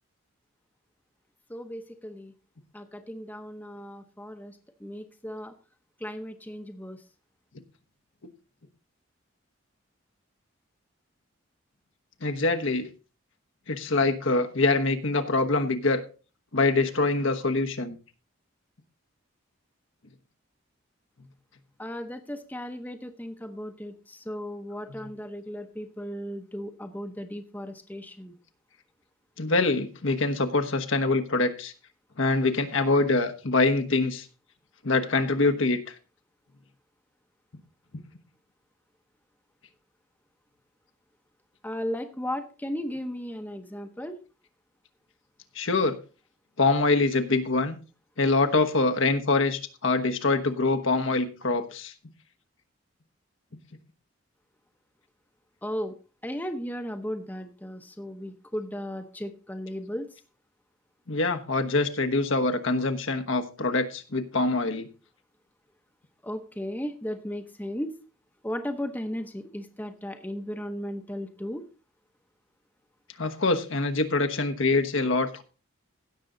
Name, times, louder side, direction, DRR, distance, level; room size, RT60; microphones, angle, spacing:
voice 1, 1.5-2.3 2.7-5.5 6.0-7.0 21.8-28.4 41.6-44.2 55.6-56.0 56.2-60.1 66.2-67.9 68.4-71.7, equal, 10° left, 6 dB, 0.8 m, -36 dB
voice 2, 12.2-12.9 13.7-16.0 16.5-18.0 29.4-31.7 32.2-34.2 34.8-35.8 45.5-46.0 46.6-47.8 48.2-51.9 61.1-64.9 73.2-75.4, left 3 dB, 70° left, 6 dB, 1.2 m, -24 dB
16.5 x 6.8 x 3.9 m, 0.34 s
head